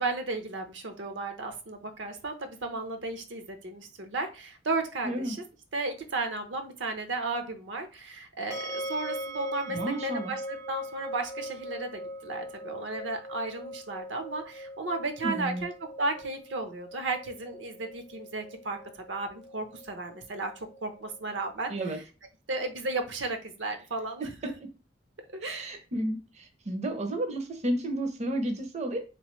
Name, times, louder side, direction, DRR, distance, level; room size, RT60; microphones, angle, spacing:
voice 1, 0.0-5.4 5.7-15.7 16.0-18.8 19.1-21.7 22.5-24.5 25.3-25.7, right 3 dB, 75° right, 6 dB, 0.7 m, -34 dB
voice 2, 5.0-5.4 9.7-10.3 15.2-15.6 21.7-22.0 25.4-29.0, right 1 dB, 40° right, 6 dB, 0.6 m, -32 dB
sound 1, 8.5-21.5, equal, 15° left, 0.5 m, -41 dB
3.7 x 3.0 x 3.0 m, 0.32 s
head